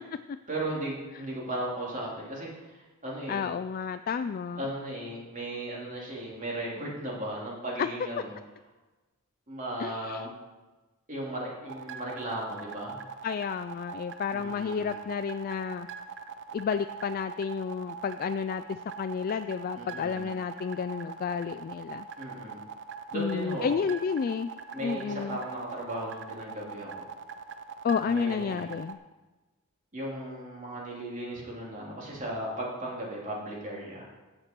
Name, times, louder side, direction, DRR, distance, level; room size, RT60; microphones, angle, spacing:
voice 1, 0.5-3.5 4.6-8.4 9.5-10.3 11.1-13.0 14.3-14.9 19.8-20.3 22.2-22.6 23.1-23.7 24.7-27.1 28.0-28.7 29.9-34.1, right 1 dB, 35° right, -4 dB, 3.0 m, -36 dB
voice 2, 3.3-4.7 7.8-7.9 9.8-10.3 13.2-15.9 16.5-22.1 23.1-24.5 24.8-25.4 27.8-29.0, left 6 dB, 40° left, 10 dB, 0.3 m, -31 dB
sound 1, 11.7-28.9, right 6 dB, 55° right, 0.7 m, -42 dB
16.5 x 6.6 x 4.5 m, 1.2 s
head